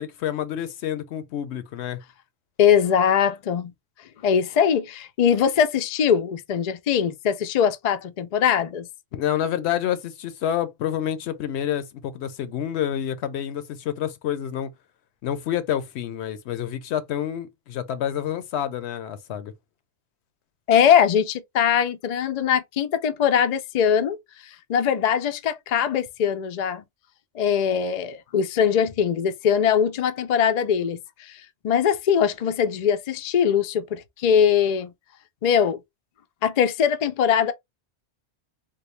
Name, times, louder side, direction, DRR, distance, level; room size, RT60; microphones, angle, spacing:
voice 1, 0.0-2.0 9.1-14.7 15.2-19.5, left 10 dB, 75° left, 0.8 m, -28 dB
voice 2, 2.6-3.7 4.2-8.9 20.7-24.2 24.7-26.8 27.3-34.9 35.4-35.8 36.4-37.5, left 8 dB, 60° left, 0.4 m, -21 dB
3.6 x 2.2 x 3.1 m
omnidirectional pair, 1.2 m